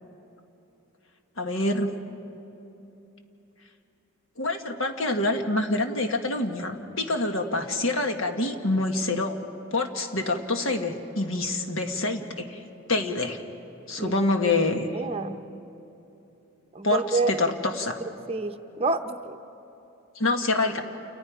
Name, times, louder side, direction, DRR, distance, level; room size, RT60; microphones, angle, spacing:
voice 1, 1.4-2.0 4.4-9.4 9.7-12.6 12.9-13.4 13.9-15.0 16.8-18.0 20.1-20.8, left 2 dB, 70° left, 5 dB, 1.6 m, -26 dB
voice 2, 14.9-15.4 16.7-17.3 18.3-19.4, right 3 dB, 30° right, 7 dB, 0.7 m, -28 dB
29.5 x 29.0 x 5.0 m, 2.9 s
head